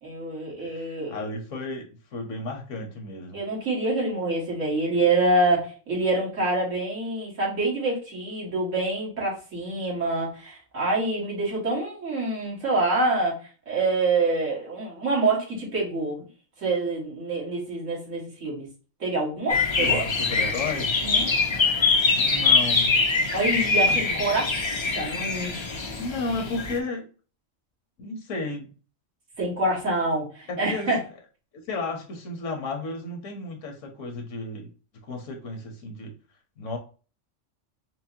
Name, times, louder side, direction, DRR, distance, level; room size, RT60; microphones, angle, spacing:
voice 1, 0.0-1.2 3.3-13.4 13.7-16.3 16.6-18.7 19.0-20.1 21.0-21.3 23.3-24.5 24.9-25.6 29.4-31.0, right 2 dB, 75° right, -5 dB, 2.0 m, -26 dB
voice 2, 0.6-3.4 19.8-20.9 22.1-23.0 23.9-24.2 26.0-27.0 28.0-28.7 30.5-30.9 31.6-34.7 35.0-36.1 36.6-36.8, left 3 dB, 70° left, 2 dB, 1.3 m, -33 dB
sound 1, 19.5-26.8, left 4 dB, 40° left, 0.4 m, -23 dB
5.9 x 2.0 x 2.7 m, 0.36 s
omnidirectional pair, 1.3 m